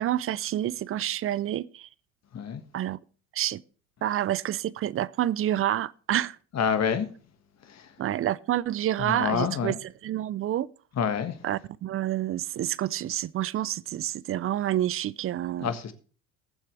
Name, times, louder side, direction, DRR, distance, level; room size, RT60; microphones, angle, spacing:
voice 1, 0.0-1.9 2.7-3.0 3.3-3.6 4.0-6.4 8.0-10.7 11.4-15.7, right 12 dB, 30° right, 0.5 m, -28 dB
voice 2, 6.5-7.1 7.7-7.9 9.0-9.8 11.0-11.4 15.6-15.9, left 7 dB, 35° left, 1.6 m, -27 dB
20.5 x 7.4 x 3.3 m
hypercardioid pair, 65°, 43 cm